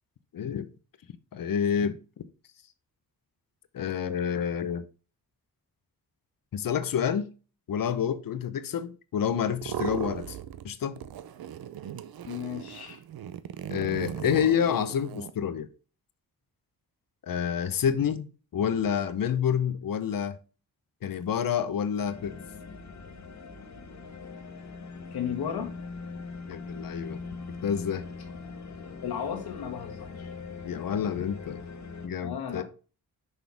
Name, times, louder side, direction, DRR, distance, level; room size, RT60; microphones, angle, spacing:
voice 1, 0.3-0.7 1.3-2.0 3.7-4.9 6.5-7.3 7.7-10.4 10.6-11.0 13.7-15.7 17.2-20.4 21.0-22.4 26.5-27.2 27.6-28.0 30.6-31.6 32.0-32.6, left 8 dB, 65° left, 0.8 m, -28 dB
sound 1, 9.5-10.7 11.0-15.3, right 10 dB, 75° right, 0.7 m, -37 dB
voice 2, 12.3-13.0 25.1-25.7 29.0-30.3 32.2-32.6, left 8 dB, 85° left, 1.6 m, -34 dB
sound 2, 22.0-32.1, left 4 dB, 50° left, 1.3 m, -41 dB
6.2 x 5.5 x 3.5 m
cardioid pair, 100°, 37 cm